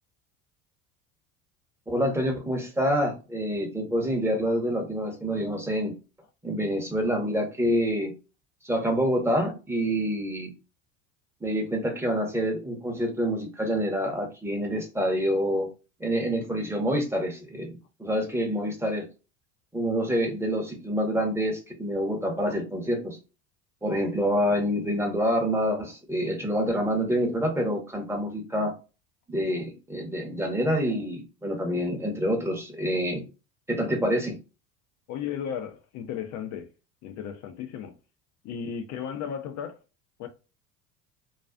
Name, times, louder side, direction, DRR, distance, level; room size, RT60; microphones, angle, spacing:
voice 1, 1.9-5.9 6.4-8.1 8.6-10.5 11.4-15.7 16.0-17.7 18.0-19.1 19.7-23.2 23.8-28.7 29.3-33.2 33.7-34.4, equal, 5° right, 0.7 m, -27 dB
voice 2, 35.1-36.7 37.0-38.0 38.4-39.8 40.2-40.3, left 8 dB, 45° left, 0.4 m, -35 dB
2.4 x 2.3 x 2.2 m
hypercardioid pair, 75°, 41 cm